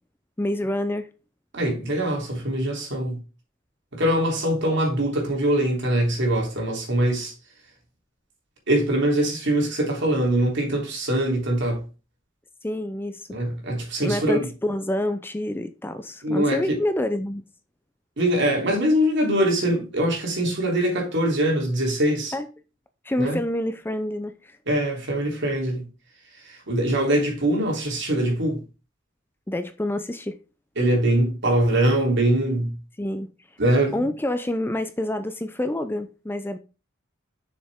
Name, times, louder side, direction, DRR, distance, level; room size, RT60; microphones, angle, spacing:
voice 1, 0.4-1.1 12.6-13.4 14.0-17.4 22.3-22.5 23.0-24.6 29.5-30.4 33.0-33.3 33.9-36.6, left 1 dB, 10° left, 0.5 m, -27 dB
voice 2, 1.5-3.2 3.9-7.3 8.7-11.8 13.3-14.5 16.2-16.6 18.2-22.3 23.2-23.4 24.7-25.8 26.4-28.6 30.8-32.7 33.6-34.0, right 1 dB, 60° right, 3.2 m, -23 dB
7.3 x 6.5 x 3.6 m
head